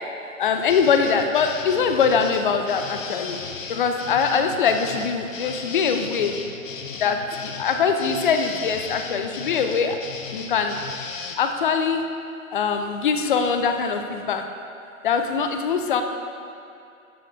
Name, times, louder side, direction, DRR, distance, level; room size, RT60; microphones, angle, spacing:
voice 1, 0.4-3.4 3.7-6.4 7.0-10.0 10.3-10.8 11.4-12.0 12.5-14.4 15.0-16.0, left 6 dB, 35° left, 6 dB, 0.6 m, -22 dB
sound 1, 0.7-11.3, left 5 dB, 60° left, 0.9 m, -36 dB
12.5 x 5.3 x 3.9 m, 2.5 s
figure-of-eight pair, 130°, 43 cm